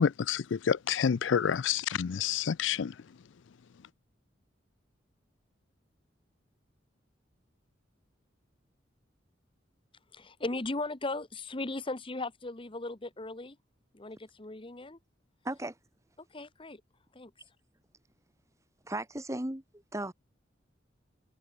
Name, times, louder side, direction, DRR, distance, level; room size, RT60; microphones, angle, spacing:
voice 1, 0.0-2.9, left 7 dB, 80° left, 0.4 m, -28 dB
voice 2, 10.1-13.6 13.9-15.0 16.3-16.8 17.1-17.3, left 2 dB, 30° left, 1.2 m, -37 dB
voice 3, 15.4-15.8 18.9-20.1, right 1 dB, 15° right, 2.0 m, -36 dB
head